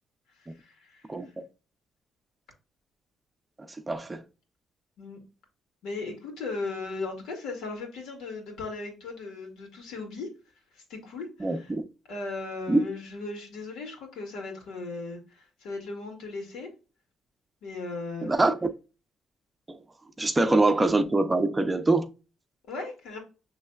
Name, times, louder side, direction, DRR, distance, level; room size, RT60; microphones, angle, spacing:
voice 1, 0.4-1.3 5.0-5.2 5.8-10.3 10.7-11.7 12.1-16.7 17.6-18.3 22.7-23.2, left 3 dB, 90° left, 1.8 m, -37 dB
voice 2, 1.1-1.4 3.9-4.2 11.4-11.8 12.7-12.9 18.2-18.6 19.7-19.8 20.2-22.1, right 2 dB, 20° right, 0.6 m, -24 dB
6.3 x 3.2 x 2.3 m
cardioid pair, 90°, 0 cm